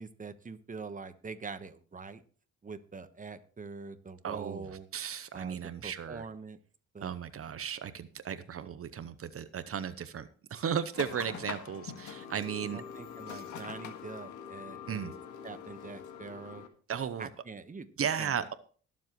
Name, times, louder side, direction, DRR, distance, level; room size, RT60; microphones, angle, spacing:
voice 1, 0.0-2.2 2.6-4.9 5.3-6.6 6.9-7.2 12.7-15.1 15.4-16.6 17.2-18.4, right 4 dB, 25° right, 10 dB, 1.2 m, -44 dB
voice 2, 4.2-6.3 7.0-12.8 13.3-13.4 14.9-15.1 16.9-17.3 18.0-18.5, right 8 dB, 50° right, 13 dB, 0.8 m, -35 dB
sound 1, 10.9-16.7, left 7 dB, 80° left, 1.8 m, -44 dB
21.5 x 7.4 x 3.1 m, 0.41 s
cardioid pair, 90°, 30 cm